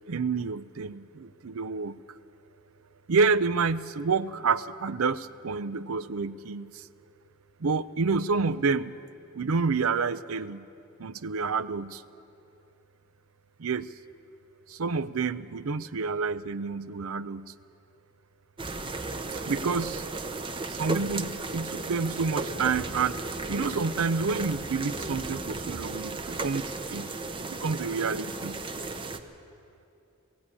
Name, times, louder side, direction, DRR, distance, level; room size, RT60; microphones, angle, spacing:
voice 1, 0.1-2.0 3.1-6.9 7.6-9.0 9.3-10.7 11.0-12.0 13.6-13.9 14.7-17.5 19.5-20.1 20.7-23.2 23.5-27.1 27.4-28.6, right 4 dB, 75° right, 16 dB, 0.6 m, -29 dB
sound 1, 18.6-29.2, right 3 dB, 25° right, 0.8 m, -35 dB
18.5 x 15.5 x 9.7 m, 2.8 s
head